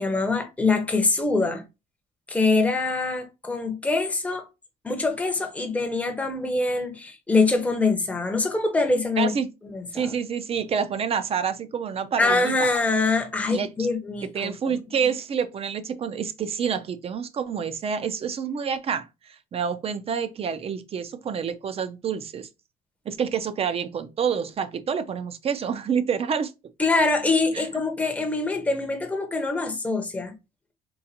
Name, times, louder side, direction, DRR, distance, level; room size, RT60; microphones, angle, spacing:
voice 1, 0.0-1.6 2.3-4.5 4.8-9.3 9.7-10.1 12.2-14.5 26.8-30.3, left 3 dB, 10° left, 0.6 m, -24 dB
voice 2, 9.2-9.5 9.9-12.7 13.5-13.9 14.3-22.5 23.1-26.5 27.5-27.6, right 7 dB, 35° right, 0.4 m, -28 dB
3.8 x 2.4 x 2.7 m
cardioid pair, 110°, 17 cm